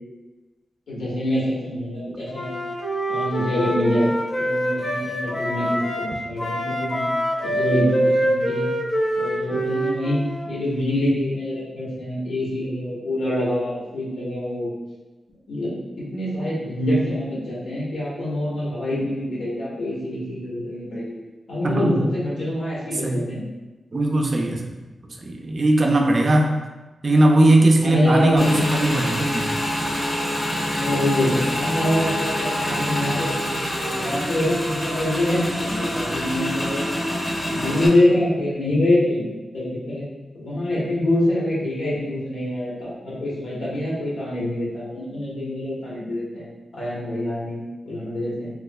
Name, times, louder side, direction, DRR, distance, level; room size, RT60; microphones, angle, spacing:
voice 1, 0.9-2.5 3.1-4.1 4.4-7.0 7.4-8.7 9.2-10.2 10.4-14.7 15.5-21.1 21.5-23.4 27.8-28.6 30.7-33.3 33.9-36.9 37.5-40.1 40.3-46.5 46.7-48.5, left 1 dB, 85° left, -8 dB, 1.3 m, -25 dB
Wind instrument woodwind instrument, 2.3-6.1 6.4-10.5, equal, 50° left, 0.5 m, -25 dB
voice 2, 22.9-23.3 23.9-24.8 25.1-26.5 27.0-29.6, right 1 dB, 40° right, 2 dB, 0.4 m, -19 dB
Motorcycle / Engine, 28.4-37.9, equal, 20° left, 0.8 m, -26 dB
3.4 x 3.0 x 2.2 m, 1.2 s
wide cardioid pair, 130°, 0 cm